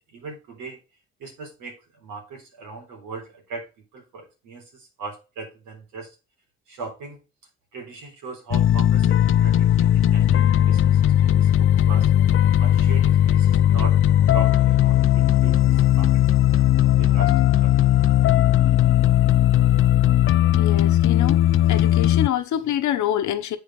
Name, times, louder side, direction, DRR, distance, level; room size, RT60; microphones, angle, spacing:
voice 1, 0.1-0.8 1.2-6.1 6.7-7.2 7.7-12.1 12.6-14.0 14.3-16.3 16.5-16.7 17.0-17.8, right 4 dB, 90° right, 3.9 m, -39 dB
sound 1, 8.5-22.3, left 12 dB, 45° left, 0.4 m, -18 dB
voice 2, 20.6-21.4 21.7-23.6, left 11 dB, 70° left, 1.1 m, -26 dB
8.1 x 5.5 x 4.8 m
cardioid pair, 90°, 30 cm